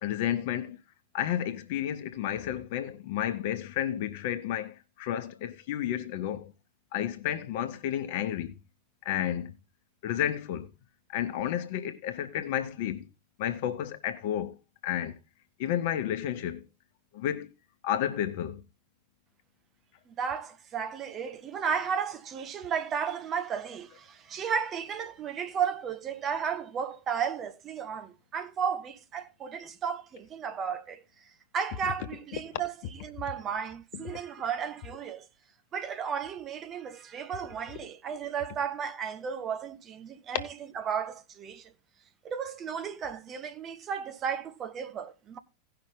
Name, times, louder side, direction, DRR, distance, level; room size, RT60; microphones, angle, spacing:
voice 1, 0.0-0.8 1.1-6.5 6.9-8.5 9.0-9.5 10.0-10.7 11.1-13.1 13.4-14.5 14.8-15.1 15.6-16.6 17.1-17.5 17.8-18.6, left 11 dB, 50° left, 1.0 m, -31 dB
voice 2, 20.1-31.2 31.5-35.3 35.7-41.7 42.2-45.4, right 7 dB, 30° right, 1.1 m, -34 dB
17.5 x 5.8 x 3.7 m
figure-of-eight pair, 90°, 0 cm